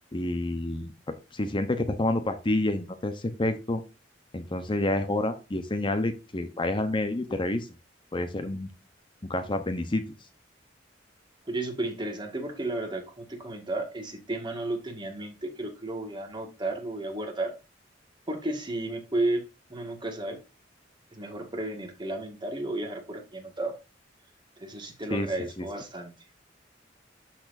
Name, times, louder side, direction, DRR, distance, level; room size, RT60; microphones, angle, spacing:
voice 1, 0.1-3.8 4.3-7.7 8.1-8.7 9.2-10.0 25.1-25.3 25.6-25.7, left 1 dB, 25° left, 0.8 m, -29 dB
voice 2, 11.5-17.5 18.3-20.4 21.1-23.7 24.6-26.1, right 2 dB, 25° right, 1.8 m, -33 dB
12.5 x 4.3 x 2.6 m
head